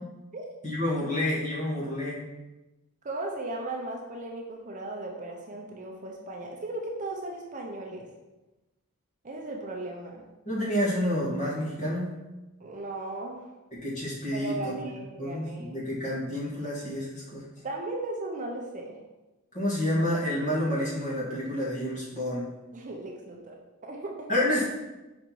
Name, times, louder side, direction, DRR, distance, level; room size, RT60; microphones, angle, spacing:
voice 1, 0.6-2.3 10.5-12.1 13.7-14.9 15.2-17.4 19.5-22.5 24.3-24.7, left 1 dB, 35° left, -6 dB, 2.0 m, -29 dB
voice 2, 3.0-8.1 9.2-10.2 12.6-13.4 14.3-15.8 17.6-19.0 22.7-23.6 23.8-24.3, right 2 dB, 35° right, 0 dB, 0.7 m, -36 dB
5.2 x 4.2 x 4.6 m, 1.1 s
head